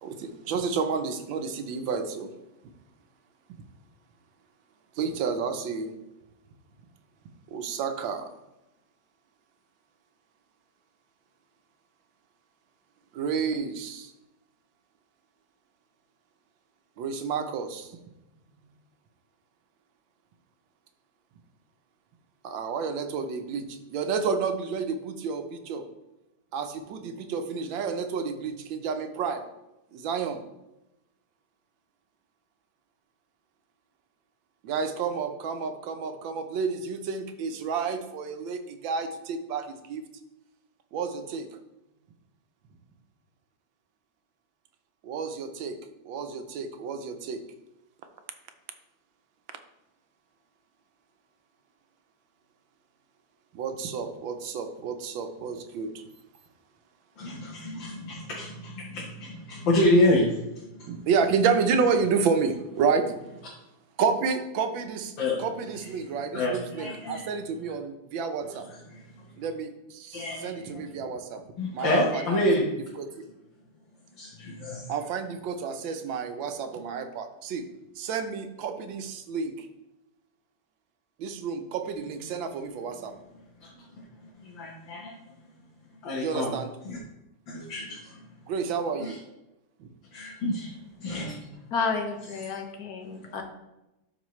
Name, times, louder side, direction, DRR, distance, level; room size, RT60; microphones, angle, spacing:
voice 1, 0.0-2.3 5.0-5.9 7.5-8.4 13.1-14.1 17.0-17.9 22.4-25.8 26.5-29.4 29.9-30.4 34.6-40.0 40.9-41.5 45.0-45.8 46.0-47.4 53.5-56.0 60.9-63.1 64.0-65.1 65.4-68.7 69.4-71.4 71.7-72.4 73.0-73.1 74.9-77.7 78.0-79.7 81.2-83.1 86.2-86.7 88.5-89.2 89.8-89.9, right 5 dB, 85° right, 7 dB, 1.5 m, -30 dB
voice 2, 57.2-60.9 65.2-65.4 65.8-65.9 66.3-67.3 68.4-69.2 70.1-70.8 71.6-72.7 74.2-74.9 83.6-84.0 84.4-85.2 86.0-86.5 86.8-87.0 87.5-88.2 89.0-89.2 90.1-91.5 93.1-93.3, left 1 dB, 85° left, -4 dB, 2.0 m, -28 dB
voice 3, 91.7-93.4, left 4 dB, 55° left, 4 dB, 1.5 m, -31 dB
12.5 x 4.7 x 3.1 m, 0.95 s
omnidirectional pair, 2.0 m